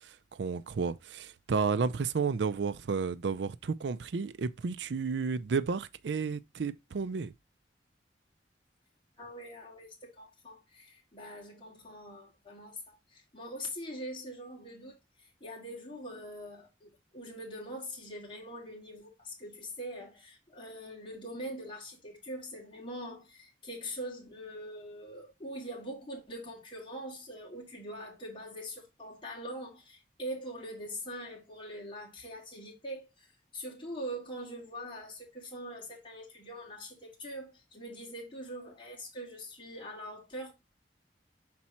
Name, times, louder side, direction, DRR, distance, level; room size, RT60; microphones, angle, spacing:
voice 1, 0.4-7.3, right 5 dB, 80° right, 0.4 m, -32 dB
voice 2, 9.2-33.3 33.5-40.5, equal, 30° left, 2.6 m, -43 dB
6.0 x 4.2 x 4.2 m
head